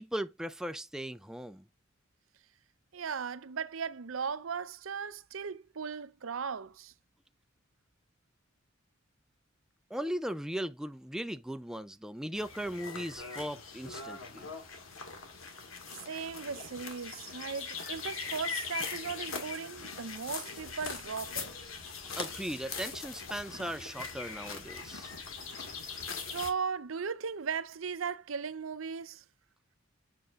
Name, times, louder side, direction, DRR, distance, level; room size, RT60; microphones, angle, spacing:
voice 1, 0.0-1.6 9.9-14.5 22.0-25.2, equal, 5° right, 0.3 m, -38 dB
voice 2, 2.9-6.9 16.1-21.5 26.2-29.2, right 6 dB, 80° right, 0.6 m, -37 dB
sound 1, 12.3-26.5, left 5 dB, 80° left, 1.8 m, -41 dB
7.5 x 6.8 x 2.4 m
head